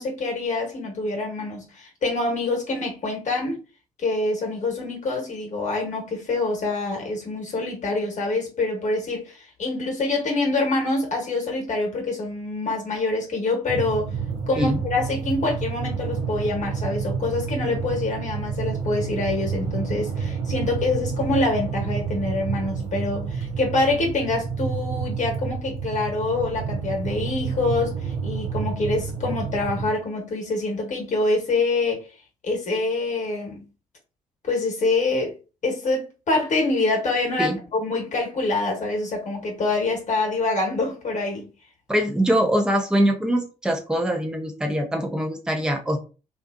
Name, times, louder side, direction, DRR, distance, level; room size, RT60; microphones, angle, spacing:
voice 1, 0.0-3.6 4.0-14.1 14.5-28.0 28.2-32.0 32.4-33.6 34.5-35.3 35.6-41.5, left 2 dB, 45° left, 1.3 m, -25 dB
sound 1, 13.7-29.9, right 6 dB, 55° right, 0.8 m, -29 dB
voice 2, 41.9-46.0, equal, 5° right, 0.7 m, -23 dB
2.5 x 2.4 x 2.5 m
figure-of-eight pair, 45°, 18 cm